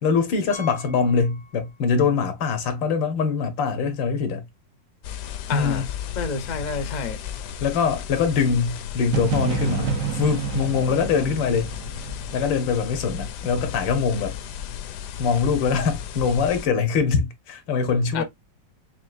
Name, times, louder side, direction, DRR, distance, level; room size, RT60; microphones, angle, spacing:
voice 1, 0.0-4.4 5.5-5.9 7.6-11.7 12.3-14.4 15.2-18.2, left 5 dB, 85° left, 1.8 m, -23 dB
Piano, 0.5-2.1 2.4-2.5 3.1-3.2 3.5-3.6 5.6-5.7, left 4 dB, 45° right, 0.4 m, -44 dB
sound 1, 5.0-16.7, left 9 dB, 70° left, 1.1 m, -34 dB
voice 2, 5.5-5.8 6.2-7.2 18.1-18.2, left 4 dB, 50° left, 0.5 m, -29 dB
sound 2, 9.1-13.0, right 6 dB, 70° right, 0.8 m, -28 dB
6.2 x 2.4 x 2.5 m
omnidirectional pair, 2.0 m